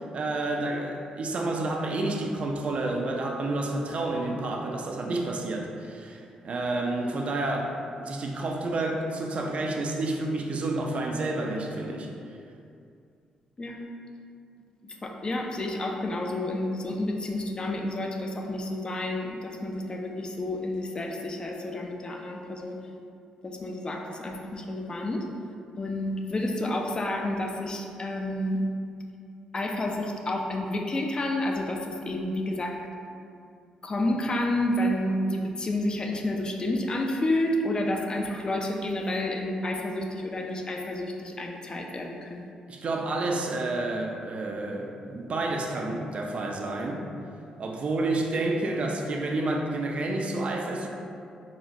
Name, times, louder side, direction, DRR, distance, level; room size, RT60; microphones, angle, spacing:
voice 1, 0.1-7.7 8.0-12.1 42.7-47.1 47.6-50.9, right 2 dB, 50° right, 1 dB, 0.4 m, -29 dB
voice 2, 15.0-22.8 23.4-25.3 25.8-28.7 29.5-32.8 33.8-42.5, left 1 dB, 35° left, 1 dB, 0.4 m, -30 dB
4.0 x 2.1 x 2.5 m, 2.4 s
supercardioid pair, 65°, 3 cm